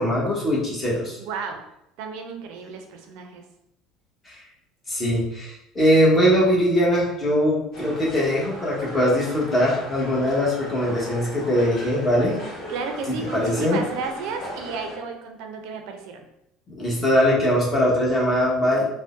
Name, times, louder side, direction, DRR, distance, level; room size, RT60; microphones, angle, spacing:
voice 1, 0.0-1.2 4.9-12.4 13.3-13.8 16.8-18.9, equal, 20° left, -5 dB, 1.1 m, -21 dB
voice 2, 1.2-1.6 2.0-3.4 12.7-16.2, right 4 dB, 75° right, 4 dB, 0.4 m, -32 dB
sound 1, 7.7-15.0, equal, 45° left, 1.2 m, -37 dB
3.6 x 2.1 x 2.5 m, 0.82 s
supercardioid pair, 115°, 0 cm